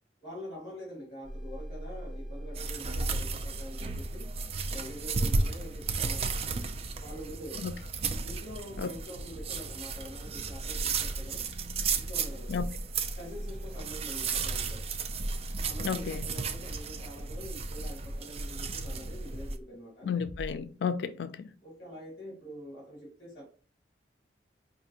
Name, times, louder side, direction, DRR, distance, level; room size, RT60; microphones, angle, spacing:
voice 1, 0.2-4.3 4.7-6.6 7.0-7.7 8.2-11.4 11.9-12.5 13.2-14.9 15.6-20.1 21.6-23.4, equal, 30° left, 1.9 m, -45 dB
sound 1, 1.2-19.0 19.3-19.6 20.2-20.6, equal, 85° right, 1.1 m, -42 dB
sound 2, 2.6-19.6, right 4 dB, 35° right, 0.3 m, -34 dB
voice 2, 15.8-16.3 20.0-21.5, left 6 dB, 80° left, 0.3 m, -32 dB
5.0 x 2.6 x 2.8 m
head